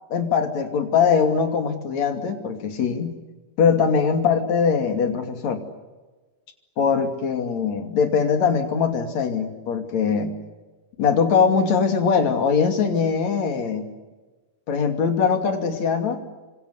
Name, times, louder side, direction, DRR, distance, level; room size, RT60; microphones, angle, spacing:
voice 1, 0.1-3.2 3.6-5.6 6.8-10.4 11.0-13.9 14.7-16.2, left 6 dB, 55° left, 7 dB, 3.8 m, -21 dB
28.5 x 25.5 x 8.2 m, 1.2 s
omnidirectional pair, 3.7 m